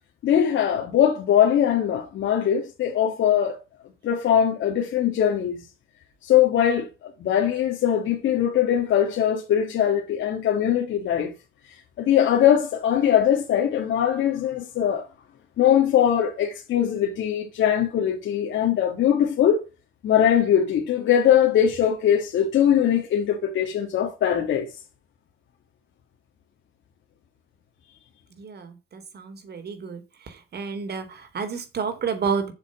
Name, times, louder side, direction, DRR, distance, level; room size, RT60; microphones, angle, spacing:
voice 1, 0.2-3.6 4.0-5.6 6.2-6.9 7.2-11.3 12.0-15.1 15.6-19.6 20.0-24.7, left 9 dB, 75° left, 1.9 m, -21 dB
voice 2, 28.4-30.0 30.5-32.5, right 6 dB, 55° right, 3.5 m, -30 dB
8.3 x 7.0 x 6.3 m
cardioid pair, 90°, 20 cm